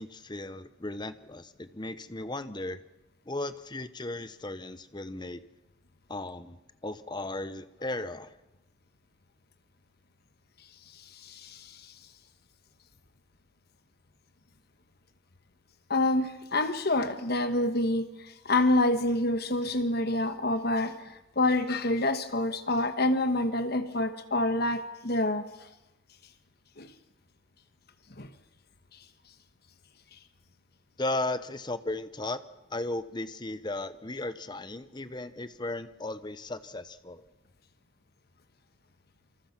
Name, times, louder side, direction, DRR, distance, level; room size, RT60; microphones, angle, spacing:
voice 1, 0.0-2.8 3.3-5.4 6.1-6.6 6.8-8.3 31.0-32.4 32.7-37.2, left 2 dB, 20° left, 13 dB, 0.9 m, -36 dB
voice 2, 10.9-11.9 15.9-25.7 26.8-26.9 28.2-28.3, left 2 dB, 50° left, 10 dB, 1.3 m, -27 dB
28.0 x 25.5 x 6.1 m, 0.94 s
head